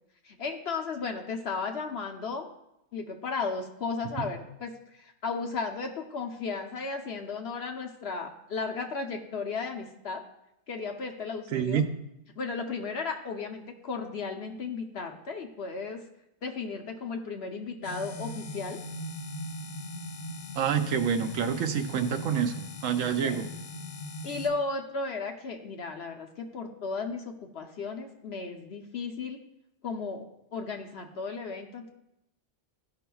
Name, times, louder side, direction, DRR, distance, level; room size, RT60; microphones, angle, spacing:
voice 1, 0.2-2.5 2.9-10.2 10.7-11.8 12.4-16.0 16.4-18.8 23.2-23.4 24.2-29.4 29.8-30.2 30.5-31.9, left 4 dB, 55° left, 3 dB, 0.9 m, -35 dB
voice 2, 11.5-11.8 20.5-23.5, right 8 dB, 75° right, 7 dB, 1.0 m, -27 dB
sound 1, 17.8-24.5, left 1 dB, 90° left, 1.3 m, -40 dB
14.0 x 5.6 x 2.3 m, 0.86 s
omnidirectional pair, 1.4 m